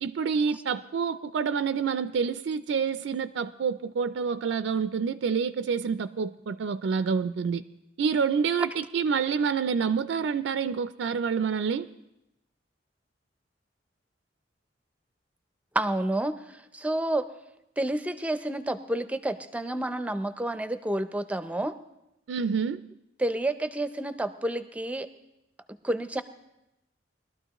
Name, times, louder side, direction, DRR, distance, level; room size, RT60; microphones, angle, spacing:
voice 1, 0.0-7.6 8.0-11.9 22.3-22.8, right 6 dB, 80° right, 13 dB, 0.4 m, -27 dB
voice 2, 15.7-17.3 17.8-21.8 23.2-25.1 25.8-26.2, right 1 dB, 5° right, 10 dB, 0.5 m, -29 dB
21.0 x 12.5 x 3.0 m, 0.90 s
head